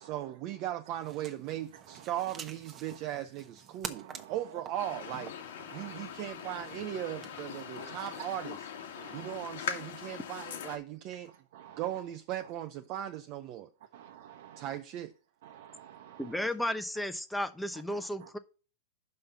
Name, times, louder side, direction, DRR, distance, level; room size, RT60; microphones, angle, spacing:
voice 1, 0.0-8.7 9.1-11.3 11.8-13.7 14.6-15.1, right 12 dB, 45° right, 0.6 m, -38 dB
sound 1, 0.9-8.4, right 7 dB, 25° right, 1.1 m, -49 dB
voice 2, 3.9-4.3 5.7-6.0 7.5-8.0 8.9-9.3 11.5-11.8 13.9-14.7 15.4-16.5 17.9-18.3, right 11 dB, 70° right, 1.0 m, -51 dB
sound 2, 4.8-10.8, left 8 dB, 75° left, 1.9 m, -42 dB
voice 3, 16.2-18.4, left 1 dB, 5° left, 0.8 m, -34 dB
5.6 x 5.3 x 6.8 m
hypercardioid pair, 130°, 0 cm